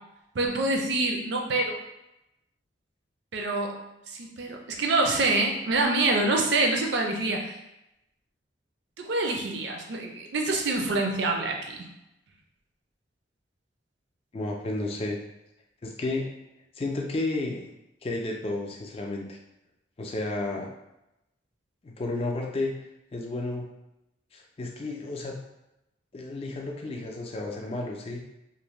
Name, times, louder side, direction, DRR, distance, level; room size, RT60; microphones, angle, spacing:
voice 1, 0.3-1.8 3.3-3.7 4.1-7.5 9.0-11.8, right 2 dB, 65° right, 2 dB, 0.4 m, -26 dB
voice 2, 14.3-15.2 15.8-16.3 16.8-17.7 18.0-19.4 20.0-20.7 21.8-22.7 23.1-23.7 24.3-25.4 26.1-28.2, left 2 dB, 30° left, 0 dB, 0.3 m, -32 dB
2.6 x 2.1 x 3.0 m, 0.89 s
head